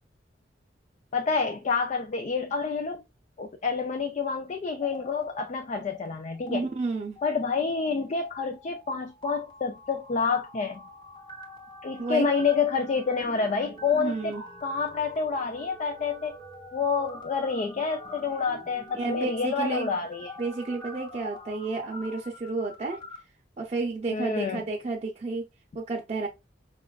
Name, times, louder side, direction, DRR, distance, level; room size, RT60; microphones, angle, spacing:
voice 1, 1.1-3.0 3.4-6.7 7.2-10.8 11.8-14.3 14.6-16.4 16.7-20.3 24.1-24.6, left 5 dB, 40° left, 0.4 m, -28 dB
sound 1, 4.7-6.1 6.3-6.6 7.1-23.2, left 1 dB, 25° left, 0.9 m, -46 dB
voice 2, 6.5-7.2 12.0-12.3 13.9-14.4 18.9-19.9 20.4-23.0 23.6-25.5 25.7-26.3, right 3 dB, 35° right, 0.6 m, -31 dB
5.0 x 2.3 x 2.2 m
head